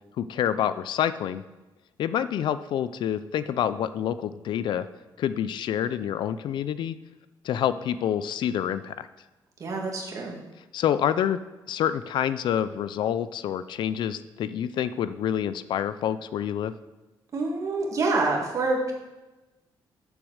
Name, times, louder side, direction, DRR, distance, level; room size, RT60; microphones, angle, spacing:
voice 1, 0.2-1.4 2.0-4.9 5.2-7.0 7.4-9.1 10.7-11.4 11.7-16.7, left 9 dB, 65° left, 14 dB, 0.4 m, -27 dB
voice 2, 9.6-10.4 17.3-18.9, right 3 dB, 40° right, -1 dB, 2.1 m, -26 dB
8.2 x 7.0 x 6.4 m, 1.1 s
cardioid pair, 150°, 9 cm